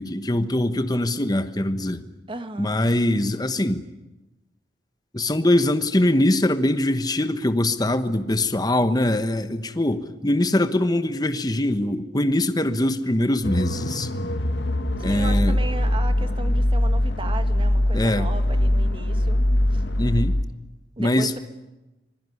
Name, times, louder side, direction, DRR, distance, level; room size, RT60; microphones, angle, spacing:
voice 1, 0.0-2.1 2.6-3.8 5.1-14.1 15.0-15.6 17.9-18.3 20.0-20.3 21.0-21.4, left 1 dB, 20° left, 10 dB, 1.1 m, -22 dB
voice 2, 2.3-2.8 15.0-19.4 19.7-19.8 21.0-21.4, right 2 dB, 30° right, 8 dB, 1.9 m, -36 dB
sound 1, 13.4-20.4, left 1 dB, 80° left, 1.6 m, -22 dB
26.0 x 20.0 x 9.6 m, 1.0 s
head